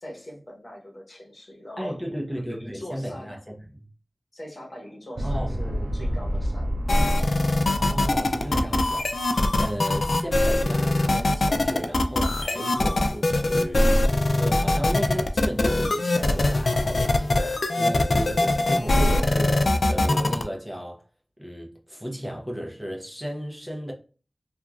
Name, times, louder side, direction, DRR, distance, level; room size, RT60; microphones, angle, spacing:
voice 1, 0.0-3.3 4.3-6.7, equal, 55° left, 1.0 m, -41 dB
voice 2, 1.8-3.9 5.2-5.6 7.8-21.0 21.4-23.9, equal, 5° right, 0.7 m, -34 dB
sound 1, 5.2-10.4, equal, 60° right, 0.4 m, -31 dB
sound 2, 6.9-20.4, left 2 dB, 75° left, 0.3 m, -22 dB
2.9 x 2.4 x 2.4 m
wide cardioid pair, 60°, 0 cm